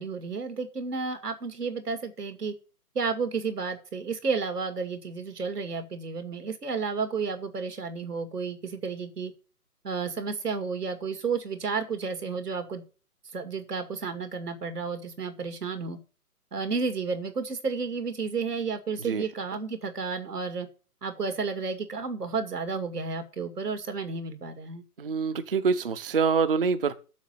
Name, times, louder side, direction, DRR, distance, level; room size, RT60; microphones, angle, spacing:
voice 1, 0.0-2.5 2.9-9.3 9.8-12.8 13.3-16.0 16.5-20.7 21.0-24.8, right 5 dB, 80° right, 2.5 m, -32 dB
voice 2, 25.0-26.9, right 5 dB, 35° right, 0.6 m, -25 dB
7.1 x 6.7 x 7.8 m
hypercardioid pair, 160°, 46 cm